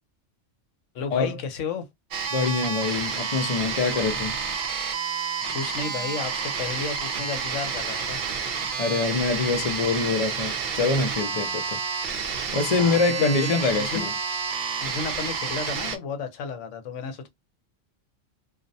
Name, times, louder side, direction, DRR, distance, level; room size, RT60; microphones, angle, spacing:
voice 1, 0.9-1.9 5.5-8.2 12.8-14.1 14.8-17.3, left 5 dB, 75° left, 1.0 m, -33 dB
sound 1, 2.1-16.0, right 6 dB, 60° right, 0.5 m, -30 dB
voice 2, 2.3-4.4 8.8-11.8 12.2-14.1, left 4 dB, 60° left, 0.3 m, -25 dB
2.4 x 2.0 x 2.6 m
omnidirectional pair, 1.3 m